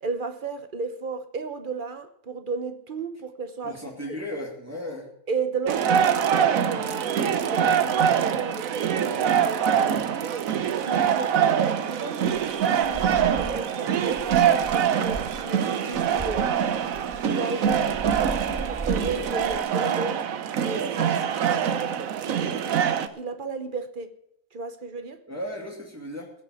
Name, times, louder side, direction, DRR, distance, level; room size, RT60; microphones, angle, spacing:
voice 1, 0.0-3.8 4.1-4.2 5.3-10.4 10.8-16.5 17.2-20.3 20.6-24.1 24.5-25.2, right 4 dB, 40° right, 1.0 m, -34 dB
voice 2, 3.6-5.1 25.3-26.3, left 1 dB, 10° right, 2.4 m, -35 dB
sound 1, 5.7-23.1, right 8 dB, 80° right, 1.3 m, -24 dB
sound 2, 12.4-13.7 14.1-15.5 15.9-17.3 17.6-19.6, right 3 dB, 25° right, 0.3 m, -38 dB
16.0 x 6.6 x 9.1 m
omnidirectional pair, 1.4 m